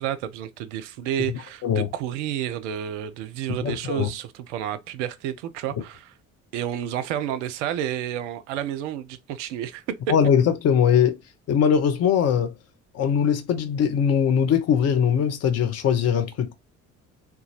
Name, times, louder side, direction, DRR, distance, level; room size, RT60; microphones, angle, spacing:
voice 1, 0.0-6.1 6.5-10.0, right 10 dB, 65° right, 0.5 m, -30 dB
voice 2, 3.6-4.1 10.1-11.2 11.5-12.5 12.9-16.5, left 8 dB, 40° left, 0.7 m, -21 dB
3.8 x 2.3 x 2.8 m
figure-of-eight pair, 50°, 39 cm